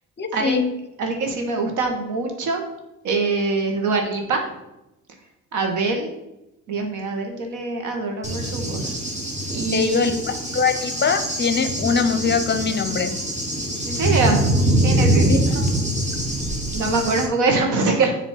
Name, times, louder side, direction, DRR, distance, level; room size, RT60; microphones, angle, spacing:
voice 1, 0.2-0.7 9.7-13.2 15.3-15.5, left 5 dB, 35° left, 9 dB, 0.7 m, -22 dB
voice 2, 1.0-2.6 3.0-4.4 5.5-6.2 6.7-9.0 9.5-10.2 13.9-14.5 14.8-15.7 16.7-18.2, right 3 dB, 75° right, 3 dB, 1.4 m, -24 dB
Cricket / Thunder, 8.2-17.3, right 1 dB, 25° right, 1.5 m, -23 dB
7.3 x 3.0 x 5.6 m, 0.91 s
cardioid pair, 90°, 30 cm